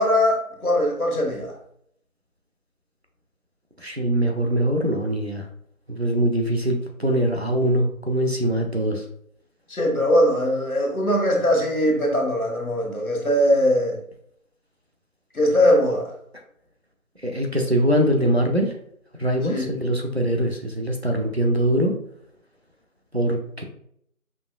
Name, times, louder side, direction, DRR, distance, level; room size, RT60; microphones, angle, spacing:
voice 1, 0.0-1.5 9.7-14.0 15.3-16.1 19.5-19.7, equal, 75° left, 1.3 m, -21 dB
voice 2, 3.8-5.5 5.9-9.0 17.2-18.7 19.2-21.9 23.1-23.6, right 1 dB, 50° right, 0.6 m, -22 dB
5.3 x 2.8 x 2.4 m
figure-of-eight pair, 180°, 43 cm